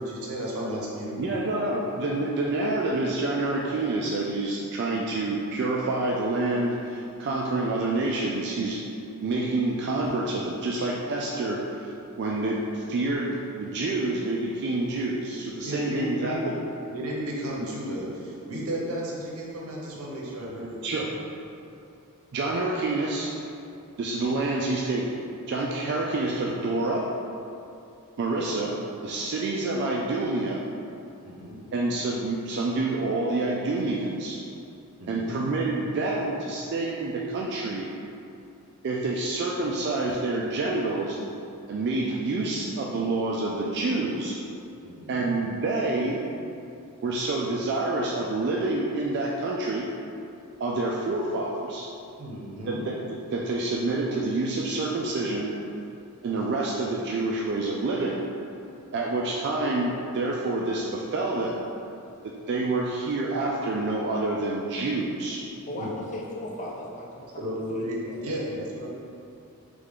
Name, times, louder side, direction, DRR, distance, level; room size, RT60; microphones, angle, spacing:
voice 1, 0.0-1.7 15.6-16.4 16.9-21.1 31.2-31.6 35.0-35.4 44.8-45.2 52.2-52.9 65.7-65.9 67.4-68.9, equal, 70° right, -4 dB, 0.8 m, -34 dB
voice 2, 1.2-8.8 9.2-11.9 12.2-16.5 20.8-21.1 22.3-23.3 24.0-25.1 25.5-27.1 28.2-28.8 29.0-30.6 31.7-34.4 35.1-37.9 38.8-41.2 41.7-44.4 45.1-46.2 47.0-49.9 50.6-51.9 52.7-55.5 56.2-58.2 58.9-61.6 62.2-65.4, right 2 dB, 50° right, -3 dB, 0.3 m, -27 dB
voice 3, 65.7-67.5 67.7-68.2, left 1 dB, 35° left, -2 dB, 0.5 m, -37 dB
3.6 x 3.3 x 3.6 m, 2.7 s
head